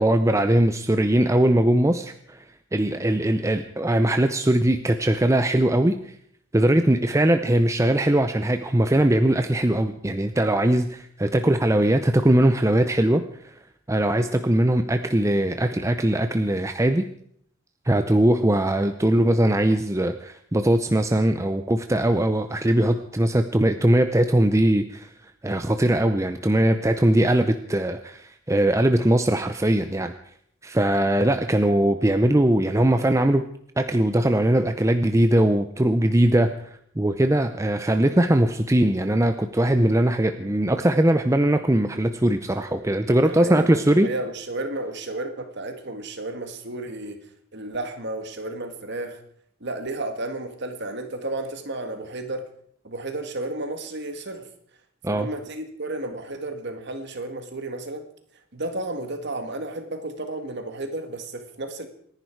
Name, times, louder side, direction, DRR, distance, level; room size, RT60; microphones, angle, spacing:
voice 1, 0.0-2.4 2.7-5.9 6.5-13.2 13.9-17.0 17.9-25.1 25.4-30.1 30.6-33.4 33.8-36.5 37.0-44.1 55.0-55.3, right 1 dB, 15° right, 8 dB, 0.6 m, -20 dB
voice 2, 43.0-47.2 47.5-49.2 49.6-52.5 52.8-54.5 55.1-58.1 58.5-61.9, right 2 dB, 55° right, 7 dB, 1.9 m, -32 dB
28.0 x 10.5 x 4.7 m, 0.66 s
head